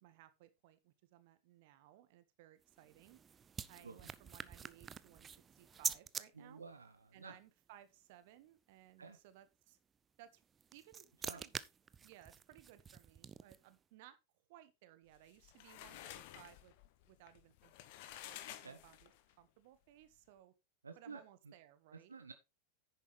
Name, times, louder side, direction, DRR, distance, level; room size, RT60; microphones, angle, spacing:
voice 1, 0.0-3.2 3.7-6.6 7.1-9.8 10.2-10.4 10.7-11.5 12.0-14.2 14.5-16.7 17.0-19.1 19.4-20.5 20.9-22.2, right 13 dB, 50° right, 1.5 m, -61 dB
sound 1, 2.6-6.2 10.4-13.7, right 7 dB, 20° right, 0.6 m, -46 dB
voice 2, 6.3-7.4 9.0-9.2 11.2-11.4 18.6-18.8 20.8-21.5 21.9-22.3, right 4 dB, 75° right, 1.1 m, -52 dB
sound 2, 15.2-19.3, left 13 dB, 50° left, 1.3 m, -52 dB
10.5 x 9.1 x 3.3 m
figure-of-eight pair, 90°, 0 cm